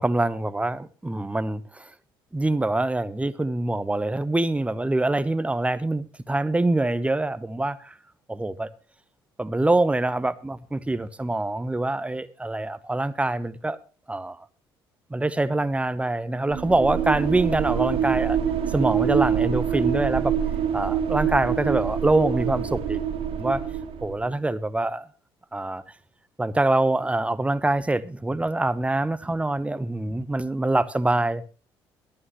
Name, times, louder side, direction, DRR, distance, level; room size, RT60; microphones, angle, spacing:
voice 1, 0.0-1.9 2.3-7.9 8.3-8.7 9.4-13.8 14.1-14.4 15.1-18.4 18.7-20.3 20.7-23.0 23.3-23.6 24.0-25.1 25.5-25.8 26.4-31.5, right 2 dB, 10° right, 0.9 m, -25 dB
sound 1, 16.5-24.3, right 8 dB, 50° right, 2.1 m, -25 dB
22.0 x 8.8 x 2.9 m
figure-of-eight pair, 50°, 12 cm